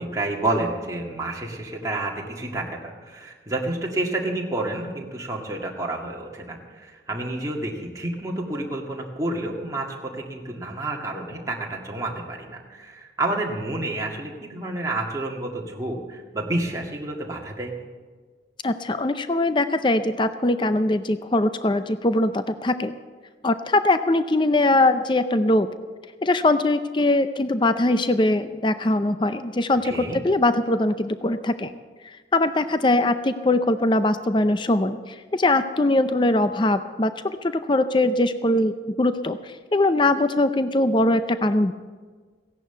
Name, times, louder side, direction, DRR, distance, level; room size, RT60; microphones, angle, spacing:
voice 1, 0.0-17.8 29.8-30.2, right 2 dB, 20° right, -1 dB, 1.8 m, -29 dB
voice 2, 18.6-23.0 23.4-25.7 26.2-31.7 32.3-35.0 35.3-39.4 39.7-41.7, left 2 dB, 25° left, 11 dB, 0.5 m, -21 dB
16.0 x 11.0 x 6.8 m, 1.5 s
head